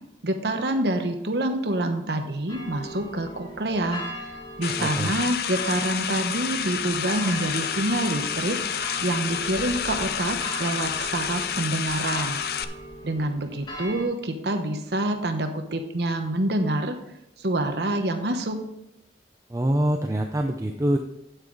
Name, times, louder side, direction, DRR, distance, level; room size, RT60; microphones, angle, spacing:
voice 1, 0.2-4.3 4.6-12.4 13.0-17.0 17.4-18.6, right 1 dB, 65° right, 6 dB, 1.0 m, -27 dB
sound 1, 2.5-14.0, equal, 25° left, 1.8 m, -40 dB
sound 2, 4.6-12.6, left 8 dB, 60° left, 0.5 m, -29 dB
voice 2, 4.8-5.1 19.5-21.0, right 1 dB, 20° right, 3 dB, 0.5 m, -24 dB
9.2 x 8.1 x 3.9 m, 0.85 s
head